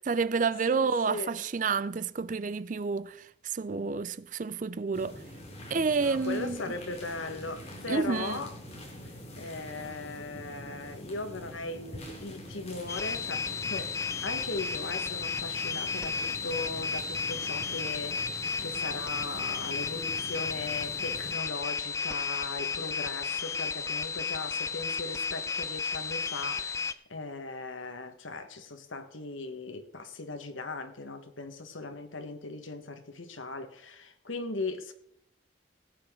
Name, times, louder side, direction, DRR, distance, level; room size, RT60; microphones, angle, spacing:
voice 1, 0.1-5.2 5.7-6.6 7.9-8.4, right 4 dB, 40° right, 0.4 m, -29 dB
voice 2, 0.7-1.3 6.0-8.5 9.4-34.9, left 3 dB, 80° left, 1.5 m, -38 dB
sound 1, 4.9-21.4, equal, 30° left, 2.7 m, -45 dB
sound 2, 12.9-26.9, left 5 dB, 15° left, 0.5 m, -33 dB
17.0 x 9.3 x 3.8 m
head